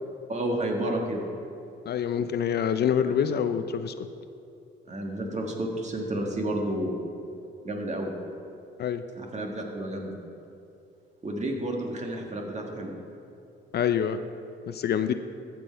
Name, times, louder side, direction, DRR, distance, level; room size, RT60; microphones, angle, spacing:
voice 1, 0.3-1.2 4.9-6.9 7.6-8.1 9.2-10.1 11.2-12.9, right 1 dB, 35° right, 1 dB, 1.7 m, -31 dB
voice 2, 1.9-4.1 8.8-9.0 13.7-14.2 14.7-15.1, left 8 dB, 55° left, 10 dB, 0.5 m, -26 dB
14.0 x 6.1 x 4.6 m, 2.6 s
cardioid pair, 90°, 20 cm